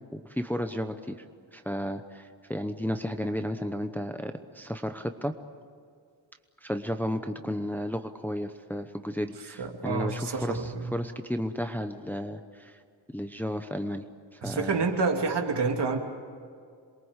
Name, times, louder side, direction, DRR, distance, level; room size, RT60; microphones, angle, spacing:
voice 1, 0.1-1.2 1.5-5.3 6.6-12.7 13.1-14.0 14.3-14.8, equal, 5° left, 7 dB, 0.9 m, -33 dB
voice 2, 9.6-10.9 14.4-16.0, right 4 dB, 60° right, 3 dB, 2.9 m, -28 dB
27.5 x 23.0 x 8.1 m, 2.2 s
wide cardioid pair, 145°, 46 cm